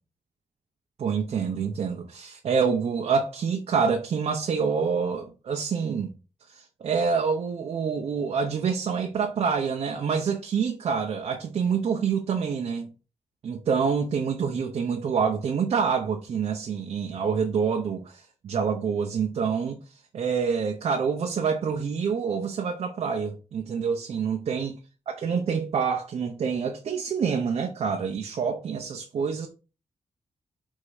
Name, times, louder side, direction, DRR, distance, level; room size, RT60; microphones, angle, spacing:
voice 1, 1.0-6.1 6.5-12.9 13.4-19.8 20.1-24.8 25.1-29.5, right 6 dB, 65° right, 0.8 m, -27 dB
5.4 x 3.7 x 4.9 m
wide cardioid pair, 165°, 11 cm